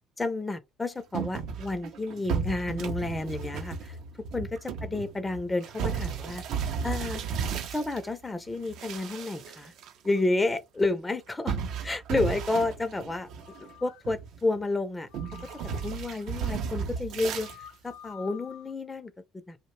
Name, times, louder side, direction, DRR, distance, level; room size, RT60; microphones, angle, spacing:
voice 1, 0.2-4.0 4.3-4.5 4.8-7.2 7.7-9.7 10.0-13.3 13.6-15.1 15.8-17.5 17.8-19.6, left 2 dB, 20° left, 0.4 m, -31 dB
sound 1, 1.1-8.1 8.6-9.9 10.2-10.3 11.5-13.7 14.0-14.6 15.1-17.6, right 6 dB, 70° right, 0.4 m, -34 dB
sound 2, 13.4-14.1 15.1-16.3 17.3-18.7, left 11 dB, 90° left, 0.3 m, -49 dB
2.5 x 2.0 x 3.0 m
supercardioid pair, 70°, 0 cm